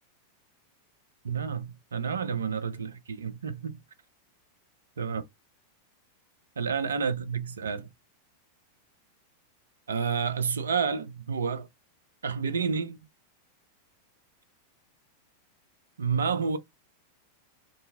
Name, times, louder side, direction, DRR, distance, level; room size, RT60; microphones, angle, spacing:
voice 1, 1.2-3.8 5.0-5.2 6.6-7.9 9.9-11.7 12.2-13.0 16.0-16.6, right 6 dB, 70° right, 0.4 m, -30 dB
2.7 x 2.6 x 2.6 m
figure-of-eight pair, 90°, 0 cm